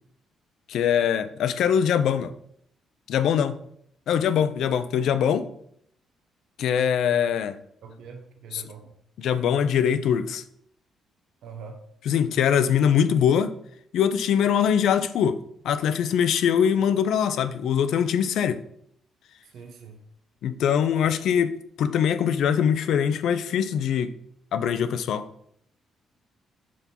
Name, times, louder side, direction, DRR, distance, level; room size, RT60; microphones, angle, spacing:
voice 1, 0.7-2.3 3.1-3.6 4.1-5.5 6.6-7.6 8.5-8.6 9.2-10.4 12.1-13.5 13.9-18.6 20.4-24.1 24.5-25.3, left 8 dB, 75° left, 0.5 m, -23 dB
voice 2, 7.8-9.0 11.4-11.8 19.5-20.0, right 5 dB, 75° right, 0.9 m, -43 dB
6.2 x 4.3 x 5.3 m
cardioid pair, 90°, 0 cm